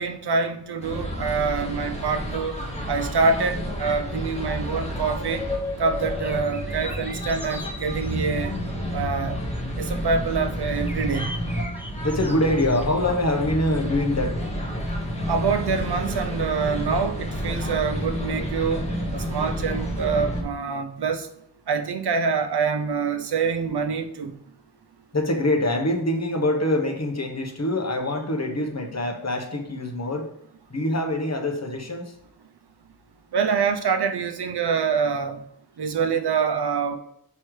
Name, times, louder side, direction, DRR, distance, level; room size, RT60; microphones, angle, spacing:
voice 1, 0.0-2.5 2.9-5.4 5.8-8.5 8.9-9.4 9.8-11.3 15.3-18.8 19.1-21.3 21.7-24.3 33.3-35.4 35.8-37.0, right 5 dB, 80° right, 8 dB, 0.7 m, -25 dB
sound 1, 0.8-20.4, equal, 15° left, 1.5 m, -30 dB
sound 2, 5.9-8.7 9.7-13.3, equal, 5° right, 0.6 m, -43 dB
voice 2, 6.3-7.5 7.8-8.2 8.7-9.1 12.0-14.3 25.1-30.3 30.7-32.1, left 1 dB, 40° left, 4 dB, 1.1 m, -25 dB
6.2 x 5.4 x 3.2 m, 0.73 s
wide cardioid pair, 75°, 39 cm